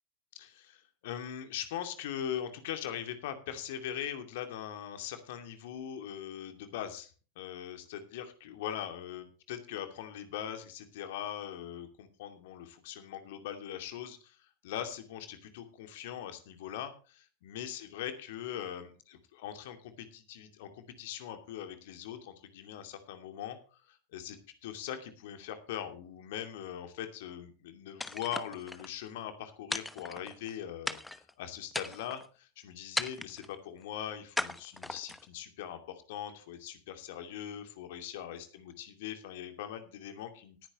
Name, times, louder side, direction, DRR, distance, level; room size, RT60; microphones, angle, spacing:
voice 1, 0.3-7.1 7.4-24.4 24.6-40.7, left 10 dB, 50° left, 7 dB, 2.5 m, -41 dB
sound 1, 28.0-28.9 29.7-30.5 30.9-31.3 31.7-32.3 33.0-33.5 34.4-35.3, left 2 dB, 5° left, 1.0 m, -37 dB
18.0 x 10.0 x 3.1 m, 0.36 s
figure-of-eight pair, 90°, 0 cm